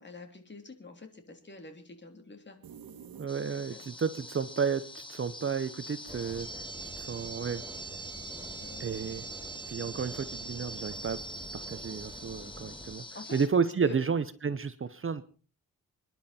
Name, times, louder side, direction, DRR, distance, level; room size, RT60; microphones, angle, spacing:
voice 1, 0.0-2.6 3.5-3.8 8.6-8.9 13.0-14.1, left 2 dB, 30° left, 5 dB, 3.3 m, -47 dB
sound 1, 2.6-3.9, right 7 dB, 80° right, 1.7 m, -49 dB
voice 2, 3.2-6.6 7.0-7.6 8.8-9.2 9.7-11.2 11.5-13.1 13.3-15.2, right 6 dB, 35° right, 13 dB, 0.8 m, -32 dB
sound 2, 3.3-13.5, right 1 dB, 15° left, 1.7 m, -43 dB
sound 3, 6.1-13.0, right 2 dB, 10° right, 1.9 m, -48 dB
27.5 x 11.0 x 4.3 m, 0.38 s
wide cardioid pair, 130°, 35 cm